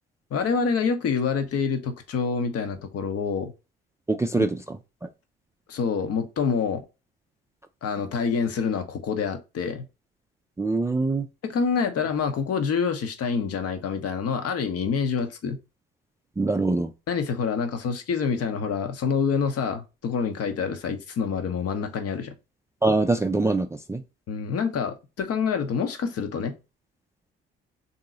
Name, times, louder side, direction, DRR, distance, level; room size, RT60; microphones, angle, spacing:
voice 1, 0.3-3.5 5.7-6.8 7.8-9.9 11.4-15.6 17.1-22.3 24.3-26.6, left 6 dB, 50° left, 0.9 m, -27 dB
voice 2, 4.1-4.5 5.0-5.1 10.6-11.3 16.4-16.9 22.8-24.0, right 2 dB, 10° right, 0.4 m, -23 dB
3.8 x 2.8 x 3.6 m
hypercardioid pair, 45°, 32 cm